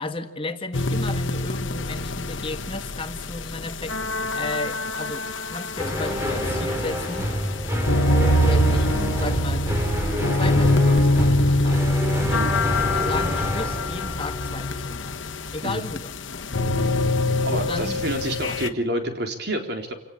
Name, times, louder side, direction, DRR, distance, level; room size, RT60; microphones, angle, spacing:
voice 1, 0.0-4.0 4.3-7.3 8.4-10.0 10.3-11.8 12.9-15.2 15.5-16.1 17.5-18.0, left 2 dB, 30° left, 7 dB, 1.7 m, -34 dB
sound 1, 0.7-18.7, left 1 dB, 80° left, 1.5 m, -24 dB
sound 2, 5.8-15.2, equal, 15° right, 4.1 m, -27 dB
voice 2, 17.4-19.9, right 1 dB, 55° right, 5 dB, 4.0 m, -28 dB
28.0 x 18.5 x 8.6 m, 0.83 s
head